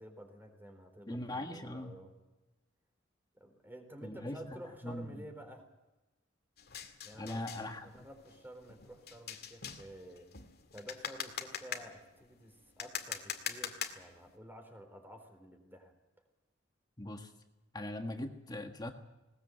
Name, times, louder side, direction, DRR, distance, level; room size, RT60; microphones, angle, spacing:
voice 1, 0.0-2.1 3.4-5.7 7.0-7.4 7.7-10.3 10.7-15.9, equal, 10° right, 5 dB, 3.9 m, -51 dB
voice 2, 1.1-2.0 4.0-4.6 4.8-5.2 7.1-8.1 17.0-17.3 17.7-18.9, left 1 dB, 20° left, 5 dB, 1.5 m, -40 dB
sound 1, 6.6-14.4, left 8 dB, 55° left, 2.1 m, -44 dB
20.0 x 19.0 x 7.9 m, 1.1 s
head